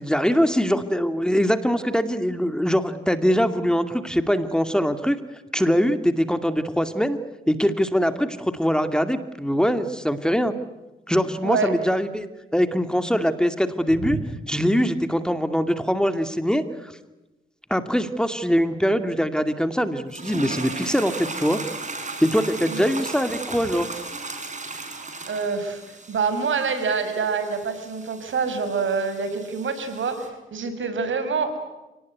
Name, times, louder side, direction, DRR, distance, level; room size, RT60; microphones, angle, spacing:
voice 1, 0.0-5.2 5.5-7.2 7.5-10.5 11.1-14.2 14.5-16.9 17.7-21.6 22.2-23.9, equal, 5° left, 9 dB, 2.3 m, -22 dB
voice 2, 11.4-11.7 14.0-14.2 22.7-22.8 25.3-31.6, right 5 dB, 70° right, 9 dB, 5.8 m, -26 dB
sound 1, 20.1-30.3, right 3 dB, 35° right, 6.3 m, -36 dB
30.0 x 19.5 x 9.5 m, 1.0 s
cardioid pair, 65°, 21 cm